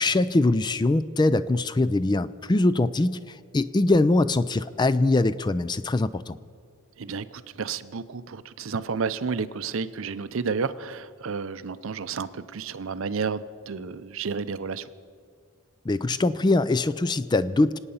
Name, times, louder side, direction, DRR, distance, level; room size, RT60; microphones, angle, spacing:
voice 1, 0.0-6.4 15.8-17.8, left 2 dB, 20° left, 15 dB, 0.3 m, -22 dB
voice 2, 7.0-14.9, right 5 dB, 65° right, 14 dB, 0.5 m, -31 dB
26.0 x 8.9 x 5.6 m, 2.1 s
head